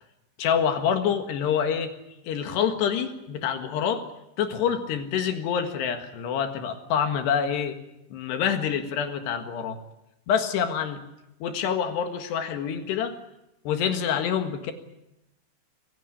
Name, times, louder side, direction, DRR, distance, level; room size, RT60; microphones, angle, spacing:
voice 1, 0.4-1.9 2.3-4.1 4.4-7.8 8.1-9.8 10.3-11.0 11.4-13.2 13.7-14.7, left 8 dB, 75° left, 7 dB, 3.7 m, -26 dB
25.0 x 16.0 x 9.7 m, 0.90 s
omnidirectional pair, 5.1 m